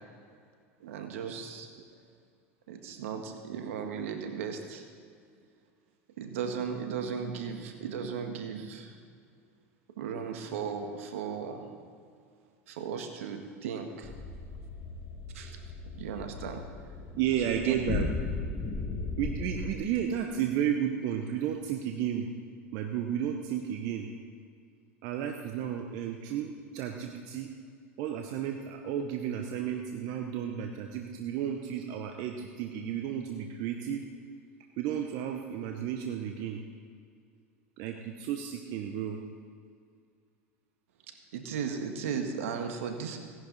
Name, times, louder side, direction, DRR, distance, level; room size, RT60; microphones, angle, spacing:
voice 1, 0.8-1.7 2.7-4.8 6.2-8.9 10.0-11.7 12.7-14.1 15.3-15.6 15.9-16.6 17.6-17.7 41.3-43.2, right 6 dB, 75° right, 5 dB, 1.6 m, -36 dB
sound 1, 14.0-19.7, left 3 dB, 35° left, 1.7 m, -36 dB
voice 2, 17.1-18.1 19.2-22.3 22.7-24.1 25.0-27.5 28.0-34.1 34.8-36.6 37.8-39.2, right 9 dB, 60° right, 3 dB, 1.1 m, -33 dB
17.5 x 11.0 x 4.1 m, 2.2 s
hypercardioid pair, 90°, 7 cm